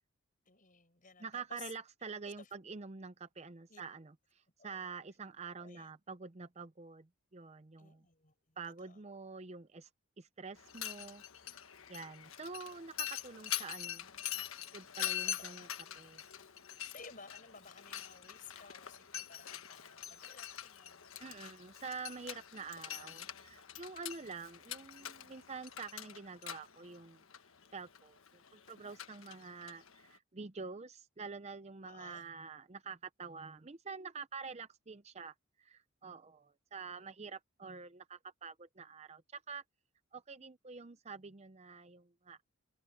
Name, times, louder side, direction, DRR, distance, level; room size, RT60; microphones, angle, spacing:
voice 1, 0.4-1.7 2.2-2.5 3.7-3.8 4.6-4.9 5.6-5.9 7.8-9.0 15.0-16.1 16.8-21.3 31.8-32.3, left 5 dB, 40° left, 6.7 m, -56 dB
voice 2, 1.2-8.0 8.6-9.9 10.2-11.2 11.5-11.6 11.9-14.1 14.3-14.4 14.7-15.7 15.9-16.2 21.2-27.2 27.7-28.2 28.5-39.6 40.1-42.4, right 5 dB, 30° right, 0.6 m, -47 dB
Mechanisms, 10.6-30.2, left 11 dB, 70° left, 1.4 m, -44 dB
head